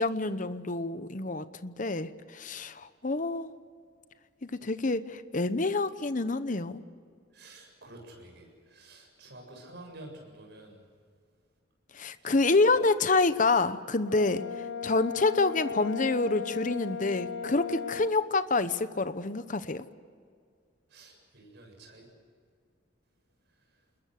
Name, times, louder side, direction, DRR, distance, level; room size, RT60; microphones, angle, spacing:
voice 1, 0.0-3.5 4.4-6.8 11.9-19.8, left 3 dB, 40° left, 13 dB, 1.0 m, -27 dB
voice 2, 7.3-10.8 12.5-12.7 20.9-22.1, right 1 dB, 60° right, 2 dB, 7.5 m, -49 dB
Brass instrument, 14.1-18.2, left 6 dB, 70° left, 0.7 m, -37 dB
28.0 x 21.0 x 6.6 m, 2.1 s
head